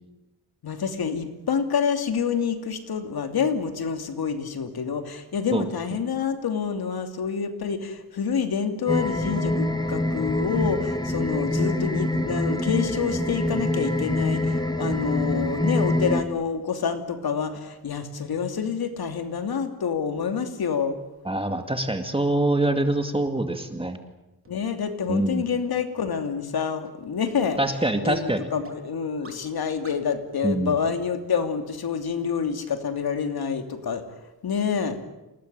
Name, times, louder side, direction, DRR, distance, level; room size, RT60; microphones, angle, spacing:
voice 1, 0.6-21.0 24.5-27.6 28.0-34.0 34.4-35.0, left 6 dB, 85° left, 6 dB, 2.9 m, -27 dB
sound 1, 8.9-16.2, left 1 dB, 10° left, 2.5 m, -25 dB
voice 2, 21.3-24.0 25.1-25.4 27.6-28.4 30.4-30.7, right 2 dB, 15° right, 6 dB, 2.2 m, -24 dB
sound 2, 23.2-23.3 23.8-23.9 24.4-24.5 25.0-25.1 25.6-25.7 26.2-26.3 26.8-26.9 27.4-27.5 28.0-28.1 28.6-28.7 29.2-29.3 29.8-29.9, right 3 dB, 35° right, 3.8 m, -46 dB
28.0 x 19.5 x 9.1 m, 1.0 s
cardioid pair, 85°, 36 cm